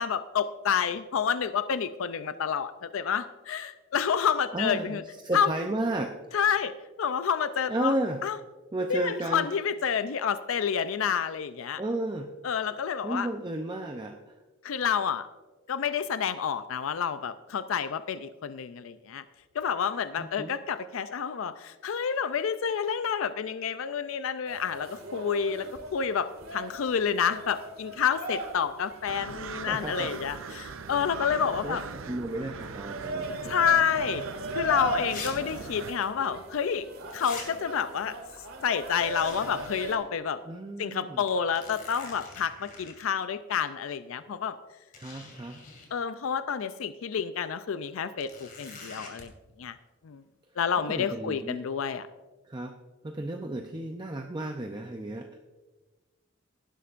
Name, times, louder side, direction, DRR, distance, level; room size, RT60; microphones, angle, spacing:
voice 1, 0.0-5.0 5.3-5.5 6.3-6.7 7.0-7.9 8.2-8.4 8.9-11.8 12.4-13.3 14.6-15.3 15.7-19.2 19.5-31.8 33.4-34.3 34.5-36.9 37.1-38.2 38.6-40.4 40.8-44.6 45.9-49.3 49.6-49.8 50.0-50.2 50.6-52.1, left 7 dB, 75° left, 12 dB, 0.4 m, -29 dB
voice 2, 4.5-6.4 7.7-8.2 8.7-9.5 11.8-12.3 13.0-14.4 20.2-20.6 29.6-30.2 31.6-33.5 40.5-41.2 45.0-45.6 50.9-51.7 52.4-52.7 53.0-55.3, right 1 dB, 20° right, 4 dB, 0.5 m, -33 dB
sound 1, 24.5-39.9, right 1 dB, 90° right, 2.2 m, -39 dB
sound 2, 29.1-35.9, right 5 dB, 70° right, 0.5 m, -41 dB
sound 3, 34.3-34.4 35.1-35.3 35.6-35.7 37.1-37.5 39.1-40.0 40.4-40.5 41.3-43.0 44.2-44.3 44.9-45.9 48.2-49.2, left 4 dB, 40° left, 2.7 m, -44 dB
17.5 x 11.5 x 2.5 m, 1.3 s
head